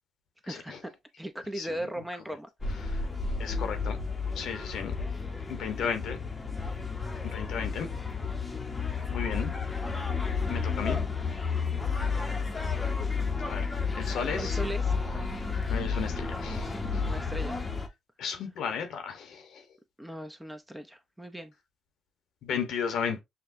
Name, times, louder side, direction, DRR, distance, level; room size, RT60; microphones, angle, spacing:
voice 1, 0.4-0.9 1.2-2.5 5.6-5.9 14.4-14.9 17.0-17.6 20.0-21.5, right 1 dB, 5° right, 0.6 m, -38 dB
sound 1, 2.6-17.9, left 4 dB, 25° left, 0.8 m, -31 dB
voice 2, 3.4-4.0 4.4-4.9 5.5-6.2 7.3-7.9 9.1-9.5 10.5-11.0 13.4-13.7 14.0-14.5 15.7-16.7 18.2-19.4 22.4-23.2, left 7 dB, 75° left, 1.0 m, -33 dB
5.9 x 2.2 x 2.6 m
cardioid pair, 90°, 0 cm